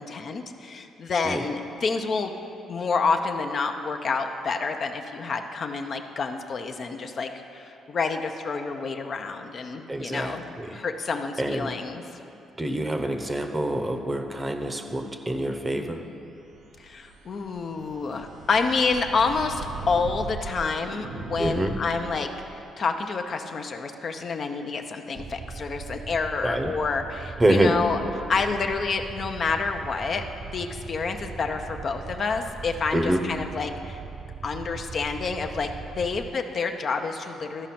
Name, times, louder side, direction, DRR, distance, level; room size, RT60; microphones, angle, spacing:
voice 1, 0.0-2.3 2.7-10.4 10.7-12.0 16.8-28.0 28.3-30.2 30.5-34.0 34.4-37.7, left 4 dB, 50° left, 5 dB, 0.6 m, -28 dB
voice 2, 9.9-10.8 11.4-11.7 12.6-16.0 21.4-21.7 26.4-26.7 27.4-27.8 32.9-33.2, right 1 dB, 20° right, 6 dB, 0.8 m, -26 dB
sound 1, 16.3-22.6, right 3 dB, 80° right, 0.6 m, -39 dB
sound 2, 25.2-36.3, right 5 dB, 40° right, 0.3 m, -40 dB
13.5 x 5.1 x 5.8 m, 2.7 s
cardioid pair, 90°, 0 cm